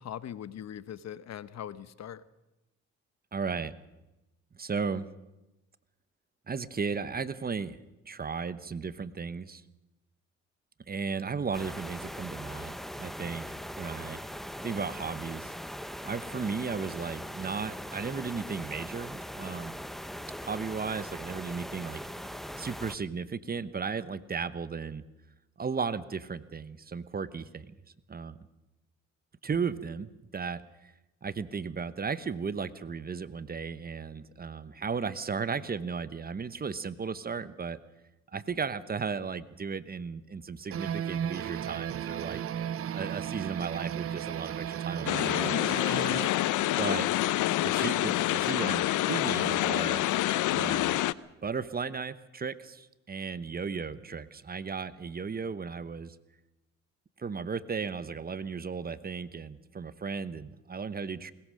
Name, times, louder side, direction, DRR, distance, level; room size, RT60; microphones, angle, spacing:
voice 1, 0.0-2.2, left 10 dB, 60° left, 16 dB, 1.0 m, -41 dB
voice 2, 3.3-3.7 4.5-5.1 6.5-7.8 8.1-9.6 10.9-13.5 13.8-14.2 14.6-15.5 16.0-19.8 20.4-22.0 22.6-25.0 25.6-27.8 28.1-28.4 29.4-30.9 31.2-37.8 38.3-42.4 42.9-45.6 46.8-47.1 47.6-50.0 50.5-51.0 51.4-56.2 57.2-61.3, right 5 dB, 30° right, 15 dB, 1.0 m, -35 dB
sound 1, 11.5-22.9, equal, ahead, 0.9 m, -40 dB
sound 2, 40.7-46.3, right 9 dB, 50° right, 0.7 m, -35 dB
sound 3, 45.1-51.1, left 15 dB, 80° left, 0.7 m, -27 dB
20.5 x 20.5 x 6.5 m, 0.98 s
cardioid pair, 90°, 30 cm